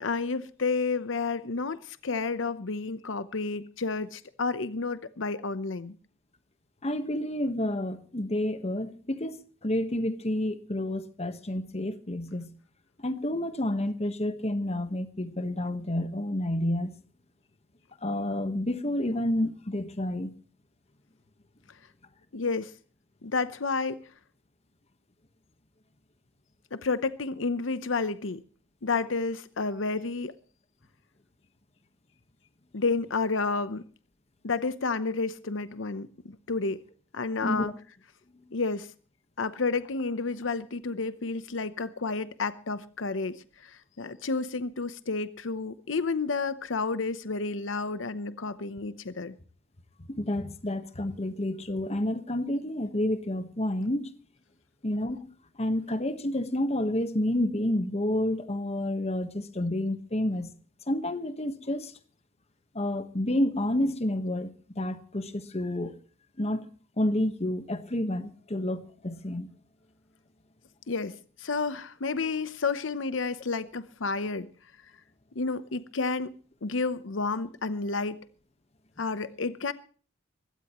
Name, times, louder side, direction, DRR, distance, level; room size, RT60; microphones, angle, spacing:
voice 1, 0.0-5.9 22.3-22.7 23.2-24.0 26.7-28.4 28.8-30.3 32.7-33.8 34.4-36.1 36.5-36.8 37.1-37.7 38.5-38.9 39.4-49.4 70.9-74.5 75.3-76.3 76.6-78.2 79.0-79.7, left 4 dB, 80° left, 0.8 m, -30 dB
voice 2, 6.8-12.5 13.0-16.9 18.0-20.3 37.4-37.7 50.1-54.1 54.8-55.3 55.6-60.5 60.9-61.9 62.7-65.9 66.4-66.7 67.0-69.5, left 1 dB, 35° left, 1.3 m, -29 dB
22.0 x 17.0 x 3.1 m
head